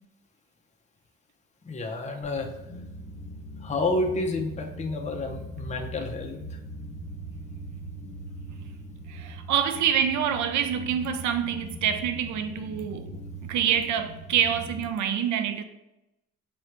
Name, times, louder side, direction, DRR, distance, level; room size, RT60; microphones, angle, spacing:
voice 1, 1.6-2.5 3.6-6.4, left 2 dB, 25° left, 0.6 m, -29 dB
sound 1, 2.2-14.9, right 1 dB, 60° left, 0.8 m, -41 dB
voice 2, 9.1-13.2 13.5-15.6, right 8 dB, 75° right, 0.4 m, -26 dB
3.8 x 3.1 x 3.2 m
cardioid pair, 90°, 30 cm